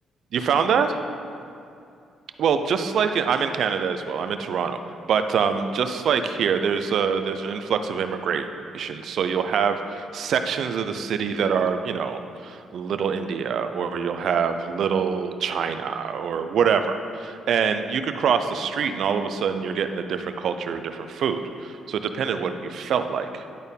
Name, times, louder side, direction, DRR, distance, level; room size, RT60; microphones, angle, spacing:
voice 1, 0.3-1.0 2.4-4.8 5.1-8.5 8.7-23.4, right 6 dB, 65° right, 8 dB, 0.5 m, -25 dB
10.5 x 4.4 x 5.3 m, 2.5 s
cardioid pair, 90°, 0 cm